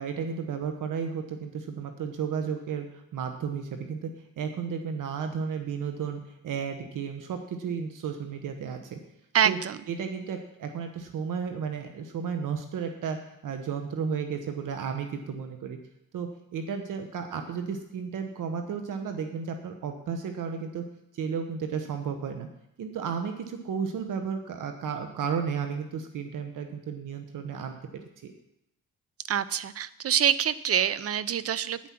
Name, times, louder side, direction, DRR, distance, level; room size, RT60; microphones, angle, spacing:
voice 1, 0.0-2.9 3.1-4.1 4.4-9.0 9.4-9.6 9.9-15.8 16.1-20.8 21.1-22.5 22.8-28.3, right 6 dB, 65° right, 6 dB, 1.2 m, -33 dB
voice 2, 9.3-9.8 29.3-31.8, right 9 dB, 45° right, 16 dB, 0.6 m, -25 dB
9.9 x 8.6 x 6.0 m, 0.83 s
cardioid pair, 90°, 33 cm